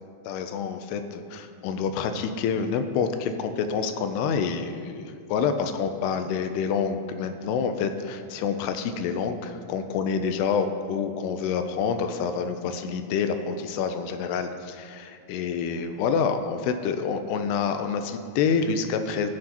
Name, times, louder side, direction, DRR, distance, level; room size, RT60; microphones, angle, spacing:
voice 1, 0.3-5.0 5.3-19.3, left 6 dB, 80° left, 7 dB, 2.5 m, -27 dB
20.0 x 7.5 x 2.9 m, 2.2 s
omnidirectional pair, 5.2 m